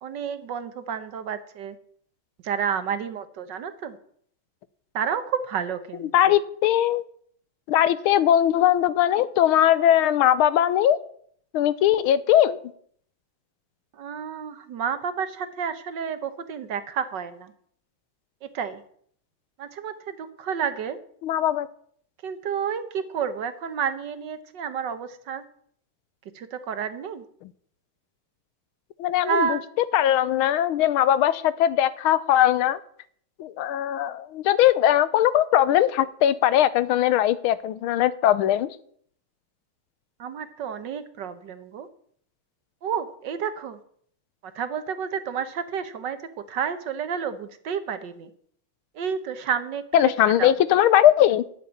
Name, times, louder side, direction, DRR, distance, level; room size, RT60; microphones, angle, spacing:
voice 1, 0.0-1.8 2.4-4.0 4.9-6.4 13.9-17.5 18.4-18.8 19.6-21.0 22.2-25.4 26.3-27.2 29.2-29.6 40.2-41.9 42.8-43.8 44.4-46.2 46.5-48.3 48.9-50.1 50.4-50.5, right 7 dB, 60° right, 11 dB, 1.5 m, -30 dB
voice 2, 6.1-7.0 7.7-11.0 11.5-12.6 21.2-21.7 29.0-29.6 29.9-32.8 33.4-38.7 49.9-51.4, left 11 dB, 85° left, 16 dB, 1.5 m, -20 dB
11.5 x 7.0 x 9.3 m, 0.63 s
omnidirectional pair, 2.3 m